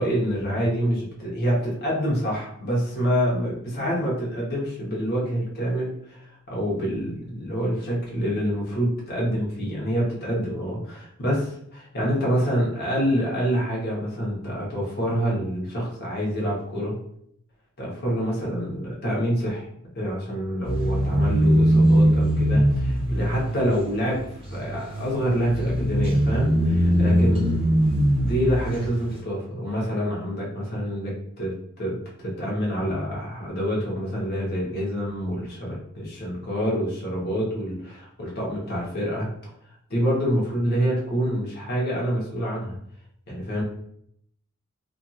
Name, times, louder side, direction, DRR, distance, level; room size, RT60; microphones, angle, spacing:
voice 1, 0.0-16.9 17.8-19.7 19.9-24.2 24.5-27.6 28.2-31.5 31.8-32.0 32.2-39.3 39.9-42.7 43.3-43.6, equal, 45° left, -4 dB, 1.0 m, -26 dB
sound 1, 20.6-29.0, equal, 25° right, 0.9 m, -21 dB
2.7 x 2.5 x 2.4 m, 0.70 s
head